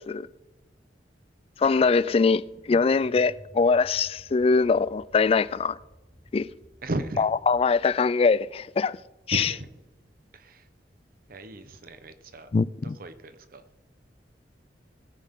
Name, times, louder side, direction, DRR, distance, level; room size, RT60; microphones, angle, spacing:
voice 1, 1.6-5.8 6.3-6.5 7.2-9.0 9.3-9.5 12.5-13.0, left 4 dB, 35° left, 0.3 m, -22 dB
sound 1, 1.6-8.2, equal, 5° left, 1.4 m, -53 dB
voice 2, 6.8-7.3 9.3-9.7 10.3-10.7 11.3-12.5 12.8-13.6, right 1 dB, 55° right, 1.0 m, -35 dB
20.5 x 9.3 x 3.8 m
head